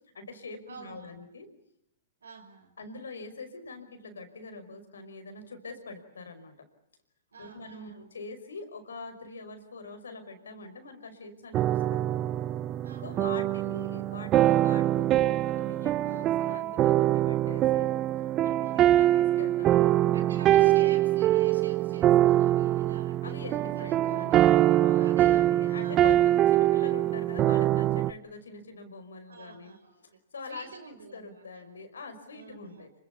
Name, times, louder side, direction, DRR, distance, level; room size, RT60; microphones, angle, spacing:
voice 1, 0.1-1.5 2.8-6.7 7.4-12.0 13.0-17.9 18.4-20.2 23.2-29.7 30.0-32.9, left 3 dB, 85° left, 9 dB, 5.5 m, -44 dB
voice 2, 0.7-1.2 2.2-2.8 7.3-8.1 12.8-13.7 16.0-16.3 18.6-19.0 20.1-23.3 23.7-24.5 25.0-26.9 29.3-30.2 30.5-31.8 32.3-32.9, right 5 dB, 85° right, 8 dB, 6.1 m, -48 dB
sound 1, 11.5-28.1, right 13 dB, 30° right, 1.0 m, -24 dB
27.5 x 25.5 x 7.2 m, 0.73 s
hypercardioid pair, 120°, 0 cm